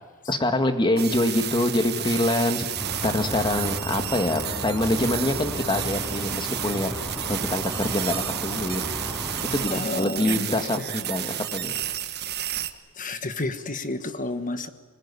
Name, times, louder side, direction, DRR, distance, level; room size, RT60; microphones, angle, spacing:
voice 1, 0.3-2.7 3.0-8.8 9.5-11.7, left 1 dB, 20° left, 7 dB, 1.9 m, -25 dB
sound 1, 1.0-12.7, right 11 dB, 50° right, 1.3 m, -31 dB
sound 2, 2.8-9.7, equal, ahead, 5.3 m, -34 dB
voice 2, 9.7-10.7 13.0-14.7, left 2 dB, 40° left, 9 dB, 1.3 m, -31 dB
25.0 x 19.0 x 9.8 m, 1.4 s
head